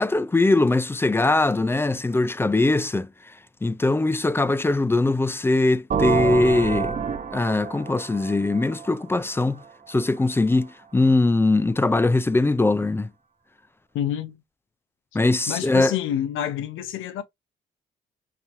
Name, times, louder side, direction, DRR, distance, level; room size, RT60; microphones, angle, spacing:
voice 1, 0.0-3.1 3.6-7.0 7.3-9.6 9.9-13.1 15.1-15.9, left 2 dB, 10° left, 0.3 m, -21 dB
sound 1, 5.9-9.6, right 7 dB, 40° right, 1.0 m, -28 dB
voice 2, 13.9-14.4 15.5-17.2, left 10 dB, 85° left, 0.8 m, -28 dB
5.7 x 2.9 x 2.6 m
cardioid pair, 90°, 20 cm